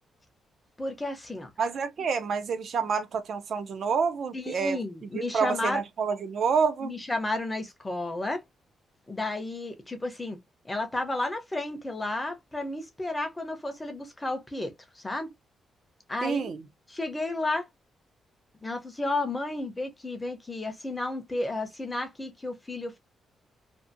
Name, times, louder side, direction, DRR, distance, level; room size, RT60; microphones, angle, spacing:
voice 1, 0.8-1.5 4.3-5.8 6.8-8.4 9.1-10.4 10.6-15.3 16.1-16.5 16.9-17.7 18.6-23.0, left 2 dB, 10° left, 0.6 m, -32 dB
voice 2, 1.6-4.8 5.1-6.9 16.2-16.6, right 6 dB, 50° right, 0.5 m, -28 dB
2.6 x 2.5 x 2.5 m
cardioid pair, 160°, 0 cm